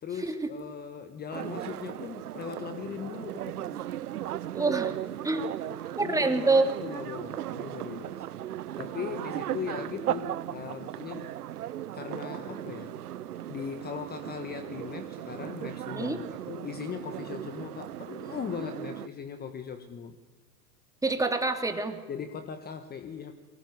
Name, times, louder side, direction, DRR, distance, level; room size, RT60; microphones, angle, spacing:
voice 1, 0.0-3.8 6.0-6.5 6.8-8.3 8.8-11.3 11.9-13.0 13.5-20.2 22.1-23.3, left 7 dB, 20° left, 9 dB, 1.4 m, -39 dB
sound 1, 1.3-19.1, right 12 dB, 70° right, 1.0 m, -37 dB
voice 2, 4.5-4.9 5.2-5.5 6.0-6.7 16.0-16.2 21.0-22.0, right 3 dB, 5° right, 6 dB, 2.7 m, -26 dB
23.5 x 20.0 x 9.7 m, 1.3 s
hypercardioid pair, 105°, 49 cm